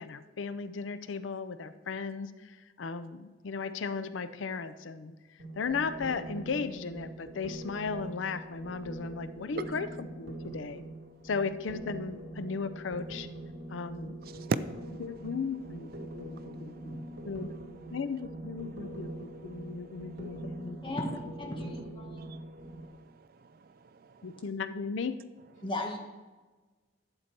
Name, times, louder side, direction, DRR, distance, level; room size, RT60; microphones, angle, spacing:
voice 1, 0.0-5.1 5.6-10.8 11.2-13.3 13.7-14.2 15.0-17.5 17.9-21.0 21.6-21.8 24.2-25.2, left 5 dB, 85° left, 0.5 m, -36 dB
sound 1, 5.4-22.9, right 1 dB, 65° right, 2.0 m, -43 dB
voice 2, 14.2-14.6 15.6-15.8 16.0-17.6 18.2-18.3 18.8-18.9 19.2-20.7 22.2-24.4, right 4 dB, 50° right, 0.4 m, -41 dB
voice 3, 20.8-22.3 25.6-26.0, left 2 dB, 25° left, 1.5 m, -36 dB
11.5 x 8.3 x 4.5 m
head